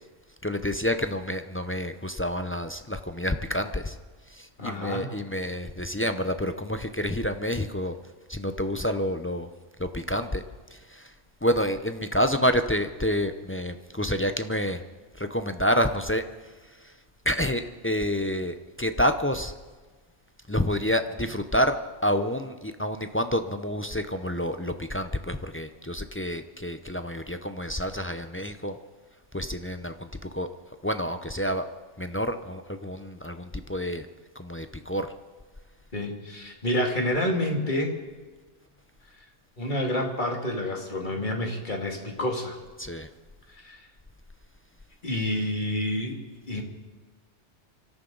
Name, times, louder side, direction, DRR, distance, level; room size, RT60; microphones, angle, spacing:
voice 1, 0.4-4.0 4.3-7.9 8.3-9.5 9.8-10.4 10.7-11.1 11.4-14.8 15.2-16.2 17.3-19.5 20.5-21.8 22.0-28.8 29.3-30.5 30.8-31.7 32.0-34.1 34.4-35.1 42.8-43.1, equal, 15° left, 8 dB, 0.4 m, -28 dB
voice 2, 4.6-5.1 35.9-38.0 39.2-39.3 39.6-42.6 43.5-43.8 45.0-46.2 46.5-46.6, left 1 dB, 40° left, 1 dB, 2.3 m, -28 dB
24.5 x 13.5 x 3.9 m, 1.3 s
omnidirectional pair, 1.2 m